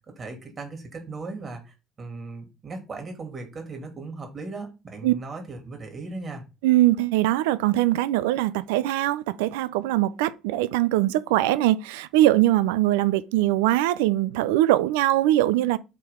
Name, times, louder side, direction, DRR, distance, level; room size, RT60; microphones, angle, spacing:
voice 1, 0.2-6.4, right 3 dB, 40° right, 2.6 m, -37 dB
voice 2, 6.6-15.8, right 15 dB, 80° right, 0.3 m, -22 dB
7.5 x 3.4 x 3.6 m
hypercardioid pair, 60°, 0 cm